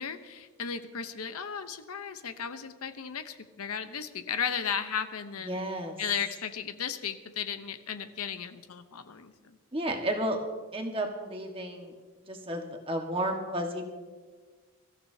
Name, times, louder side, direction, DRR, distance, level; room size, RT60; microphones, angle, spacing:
voice 1, 0.0-5.6 6.0-9.6, left 7 dB, 80° left, 10 dB, 0.8 m, -35 dB
voice 2, 5.5-6.0 9.7-10.4 10.7-11.9 12.3-13.8, right 1 dB, 25° right, 2 dB, 1.5 m, -32 dB
24.0 x 14.5 x 2.8 m, 1.4 s
head